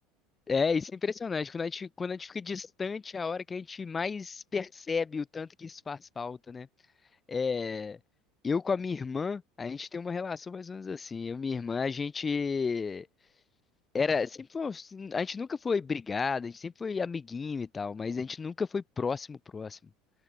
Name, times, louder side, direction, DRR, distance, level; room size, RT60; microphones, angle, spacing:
voice 1, 0.5-6.7 7.3-8.0 8.4-13.1 13.9-19.8, left 5 dB, 20° left, 6.2 m, -32 dB
supercardioid pair, 120°, 0 cm